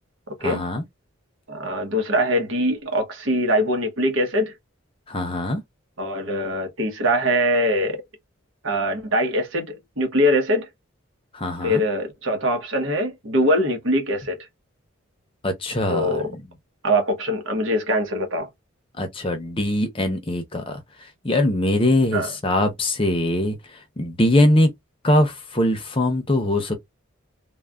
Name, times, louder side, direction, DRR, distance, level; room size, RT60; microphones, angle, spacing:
voice 1, 0.4-0.8 5.1-5.6 11.3-11.8 15.4-16.1 19.0-20.8 21.2-23.6 24.0-24.7 25.0-26.7, left 1 dB, 25° left, 0.7 m, -21 dB
voice 2, 1.5-4.5 6.0-8.0 8.6-10.7 11.6-14.4 15.9-16.3 16.8-18.5 22.1-22.3, equal, 70° right, 1.1 m, -22 dB
3.3 x 2.2 x 2.3 m
head